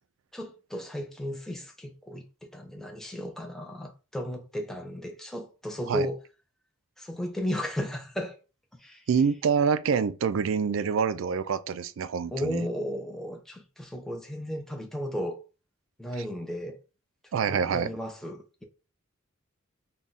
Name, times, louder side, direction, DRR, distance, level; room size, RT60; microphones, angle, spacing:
voice 1, 0.3-6.2 7.0-8.4 8.8-9.0 12.3-15.4 16.0-16.8 17.2-18.6, equal, ahead, 0.5 m, -34 dB
voice 2, 9.1-12.7 16.2-16.3 17.3-17.9, right 6 dB, 65° right, 0.4 m, -26 dB
3.6 x 2.3 x 4.0 m
head